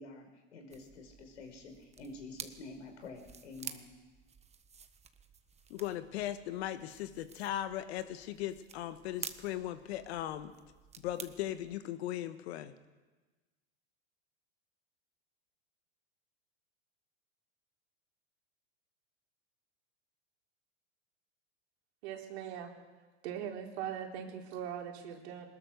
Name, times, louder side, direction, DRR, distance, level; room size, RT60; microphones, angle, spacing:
voice 1, 0.0-3.9, left 3 dB, 80° left, 5 dB, 5.1 m, -49 dB
sound 1, 0.7-11.8, right 6 dB, 20° right, 1.3 m, -51 dB
voice 2, 5.7-10.5 11.0-12.7, left 12 dB, 65° left, 10 dB, 1.6 m, -38 dB
voice 3, 22.0-22.7 23.2-25.5, right 9 dB, 65° right, 1 dB, 4.3 m, -40 dB
22.0 x 20.5 x 6.6 m, 1.3 s
hypercardioid pair, 105°, 34 cm